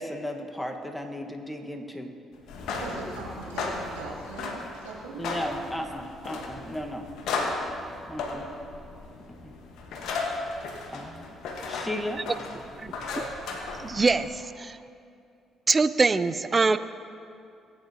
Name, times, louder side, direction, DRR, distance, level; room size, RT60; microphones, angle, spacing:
voice 1, 0.0-2.1 5.2-7.1 8.1-8.5 9.4-9.5 10.9-11.3 11.7-12.2, left 1 dB, 5° left, 3 dB, 1.4 m, -35 dB
sound 1, 2.4-14.3, left 3 dB, 65° left, 1.4 m, -35 dB
voice 2, 2.7-5.2, right 3 dB, 85° right, -6 dB, 2.6 m, -40 dB
voice 3, 13.8-14.8 15.7-16.8, right 4 dB, 30° right, 13 dB, 0.5 m, -23 dB
18.5 x 9.4 x 2.9 m, 2.5 s
hypercardioid pair, 50°, 0 cm